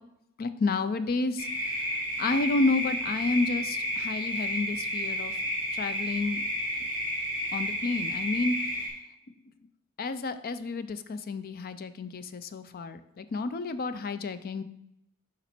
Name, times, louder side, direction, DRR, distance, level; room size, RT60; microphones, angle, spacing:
voice 1, 0.4-1.5 2.2-5.4 5.7-6.4 7.5-8.5 10.0-14.6, left 3 dB, 40° left, 12 dB, 0.4 m, -30 dB
sound 1, 1.4-8.9, equal, 20° left, 2.4 m, -31 dB
7.0 x 5.2 x 4.3 m, 0.82 s
head